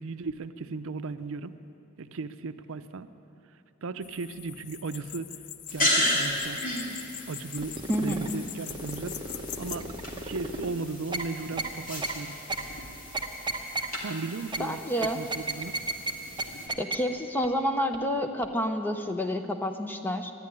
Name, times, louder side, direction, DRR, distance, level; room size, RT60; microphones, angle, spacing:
voice 1, 0.0-1.6 2.0-3.1 3.8-5.3 5.7-6.6 7.3-9.9 10.2-12.4 14.0-15.8, right 4 dB, 65° right, 11 dB, 0.6 m, -36 dB
sound 1, 4.0-9.8, left 11 dB, 90° left, 0.5 m, -43 dB
sound 2, 5.7-16.7, left 1 dB, 40° left, 2.2 m, -34 dB
sound 3, 7.6-8.3 8.7-10.7 11.1-11.2 11.6-11.7 12.0-12.1 12.5-12.6 13.1-13.9 14.5-14.6 15.0-16.1 16.4-16.5 16.7-17.0 17.4-17.5 17.9-18.0 18.4-18.5, right 2 dB, 20° right, 0.9 m, -32 dB
voice 2, 7.9-8.4 14.6-15.2 16.8-20.3, equal, 10° left, 6 dB, 0.6 m, -29 dB
11.5 x 10.0 x 9.8 m, 2.9 s
head